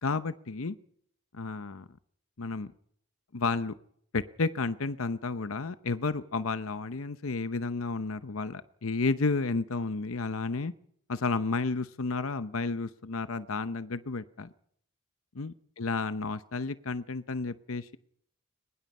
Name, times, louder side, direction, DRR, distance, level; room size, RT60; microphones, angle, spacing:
voice 1, 0.0-0.8 1.3-1.8 2.4-2.7 3.3-3.7 4.1-10.7 11.1-14.5 15.3-18.0, left 3 dB, 90° left, 13 dB, 0.8 m, -32 dB
22.5 x 21.0 x 5.5 m, 0.66 s
head